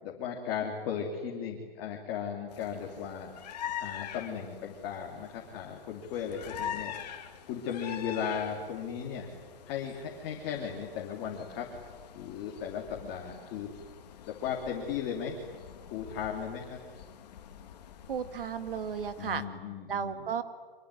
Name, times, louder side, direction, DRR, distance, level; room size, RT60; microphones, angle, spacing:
voice 1, 0.0-3.4 3.6-7.0 7.5-9.3 9.7-11.7 12.1-13.7 14.2-15.3 15.9-16.8 19.2-20.3, left 7 dB, 25° left, 0 dB, 2.9 m, -36 dB
sound 1, 2.5-19.4, left 9 dB, 45° left, 2.5 m, -45 dB
voice 2, 18.1-19.4 19.9-20.4, right 7 dB, 65° right, 10 dB, 2.3 m, -34 dB
25.0 x 23.5 x 9.9 m, 1.5 s
hypercardioid pair, 165°, 29 cm